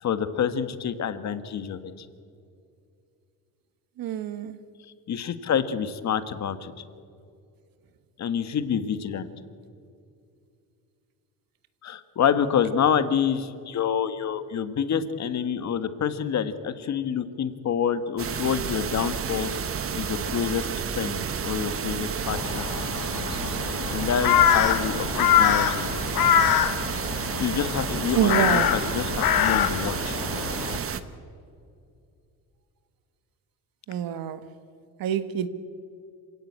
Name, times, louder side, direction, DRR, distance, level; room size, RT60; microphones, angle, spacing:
voice 1, 0.0-1.9 5.1-6.7 8.2-9.3 11.8-19.5 19.9-20.7 21.0-22.7 23.9-26.0 27.1-30.2, left 8 dB, 45° left, 1.4 m, -27 dB
voice 2, 4.0-4.6 28.2-28.7 33.9-34.4 35.0-35.5, right 10 dB, 65° right, 1.4 m, -26 dB
sound 1, 18.2-31.0, right 7 dB, 35° right, 1.2 m, -31 dB
Crow, 22.3-30.8, left 9 dB, 70° left, 1.7 m, -24 dB
26.5 x 17.0 x 8.6 m
cardioid pair, 140°, 37 cm